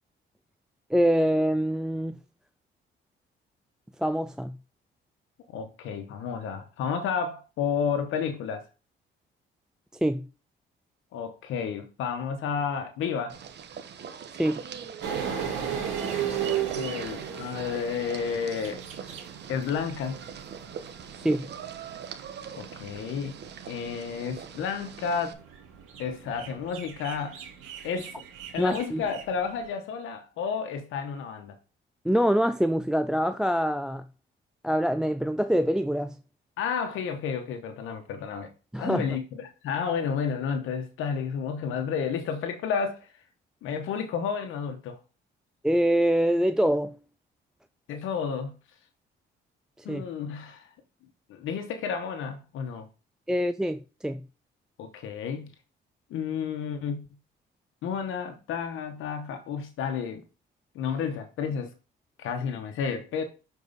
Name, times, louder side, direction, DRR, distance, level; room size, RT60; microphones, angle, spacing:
voice 1, 0.9-2.2 4.0-4.6 10.0-10.3 14.4-14.6 21.1-21.5 28.6-29.0 32.0-34.0 34.6-36.2 38.7-39.1 45.6-47.0 49.9-50.0 53.3-54.2, equal, 5° right, 0.4 m, -25 dB
voice 2, 5.5-8.6 11.1-13.4 16.5-18.8 19.5-20.2 22.5-23.4 23.7-25.3 26.0-27.4 27.8-28.1 28.5-31.6 36.6-38.5 38.8-43.1 43.6-45.0 47.9-48.5 49.8-50.7 51.3-52.9 54.8-55.5 56.1-57.1 57.8-60.2 60.7-61.7 62.2-63.2, left 6 dB, 85° left, 1.0 m, -31 dB
sound 1, 13.3-25.3, right 7 dB, 60° right, 1.1 m, -42 dB
sound 2, 15.0-29.6, right 9 dB, 80° right, 2.2 m, -37 dB
6.8 x 4.6 x 4.0 m
cardioid pair, 90°, 20 cm